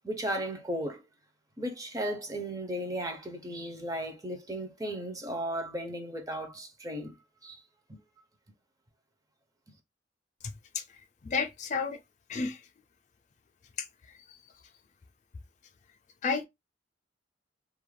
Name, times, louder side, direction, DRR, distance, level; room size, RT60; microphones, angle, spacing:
voice 1, 0.0-1.0 1.6-7.2 7.4-7.6 7.9-8.0, equal, 20° right, 0.5 m, -35 dB
voice 2, 11.2-12.0 12.3-12.6 13.8-14.4 16.2-16.4, left 5 dB, 40° left, 0.3 m, -32 dB
2.3 x 2.1 x 3.0 m
head